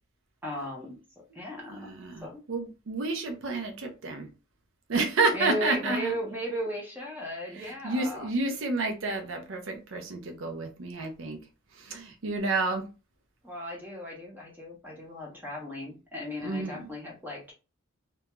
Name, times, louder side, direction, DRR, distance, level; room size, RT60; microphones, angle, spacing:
voice 1, 0.4-1.9 2.2-2.4 5.3-8.3 13.4-17.5, equal, 10° right, 0.6 m, -36 dB
voice 2, 1.7-4.3 4.9-6.1 7.6-11.4 11.7-12.8 16.4-16.9, right 3 dB, 65° right, 0.5 m, -30 dB
2.3 x 2.2 x 2.9 m
head